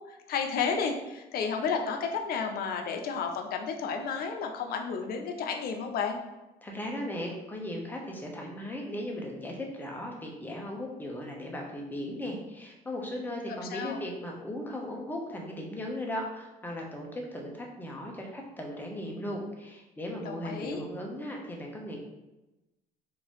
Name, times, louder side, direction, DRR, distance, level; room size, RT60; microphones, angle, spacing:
voice 1, 0.1-6.2 13.7-14.0 20.3-20.8, left 6 dB, 65° left, 4 dB, 0.5 m, -32 dB
voice 2, 6.6-22.0, left 1 dB, 10° left, -1 dB, 0.7 m, -37 dB
3.7 x 2.6 x 3.0 m, 1.0 s
cardioid pair, 110°, 17 cm